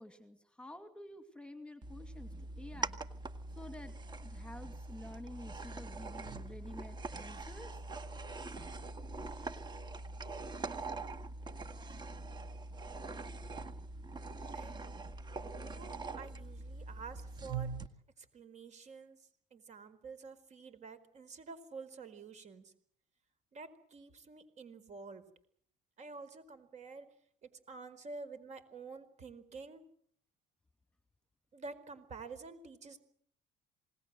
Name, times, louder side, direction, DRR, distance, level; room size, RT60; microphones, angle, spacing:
voice 1, 0.0-3.0 3.6-7.8, left 1 dB, 5° left, 8 dB, 2.5 m, -50 dB
sound 1, 1.8-17.9, right 3 dB, 25° right, 1.9 m, -43 dB
voice 2, 15.6-17.7 18.2-19.2 19.5-22.7 23.5-25.2 26.0-27.1 27.4-29.8 31.5-33.0, right 4 dB, 45° right, 13 dB, 4.6 m, -49 dB
27.5 x 19.5 x 7.8 m, 0.62 s
cardioid pair, 100°, 16 cm